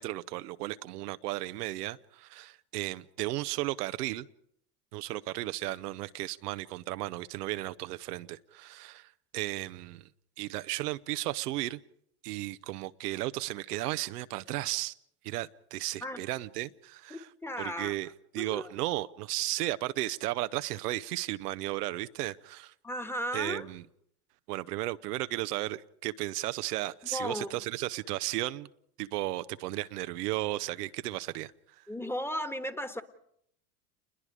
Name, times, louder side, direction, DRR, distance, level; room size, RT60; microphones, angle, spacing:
voice 1, 0.0-4.3 4.9-9.1 9.3-10.0 10.4-11.8 12.2-14.9 15.2-17.3 17.6-18.1 18.3-22.7 23.3-23.8 24.5-28.7 29.0-31.5, right 16 dB, 75° right, 0.8 m, -34 dB
voice 2, 17.1-17.9 18.4-18.7 22.8-23.7 27.1-27.6 31.9-33.0, equal, 5° left, 1.5 m, -35 dB
28.5 x 21.5 x 5.0 m
hypercardioid pair, 90°, 47 cm